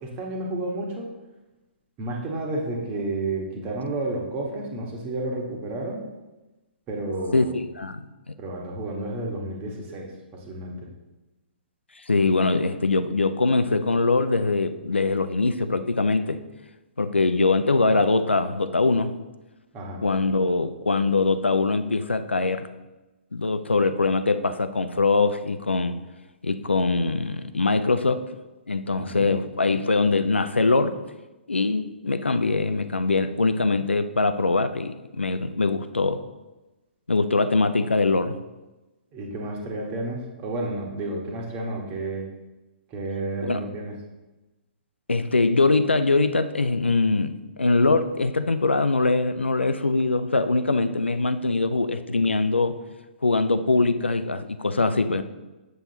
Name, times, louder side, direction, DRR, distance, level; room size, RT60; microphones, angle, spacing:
voice 1, 0.0-1.1 2.0-6.0 6.9-7.5 8.4-10.1 10.5-10.7 19.7-20.0 28.9-29.3 39.1-42.2 42.9-44.0, right 2 dB, 25° right, -1 dB, 1.5 m, -31 dB
voice 2, 7.3-8.0 12.1-16.4 17.0-19.1 20.0-22.7 23.3-26.0 26.4-28.3 28.7-31.0 31.5-36.2 37.1-38.4 43.5-43.6 45.1-52.8 53.2-55.2, left 3 dB, 80° left, 11 dB, 0.5 m, -22 dB
7.7 x 7.0 x 2.9 m, 1.1 s
figure-of-eight pair, 125°, 6 cm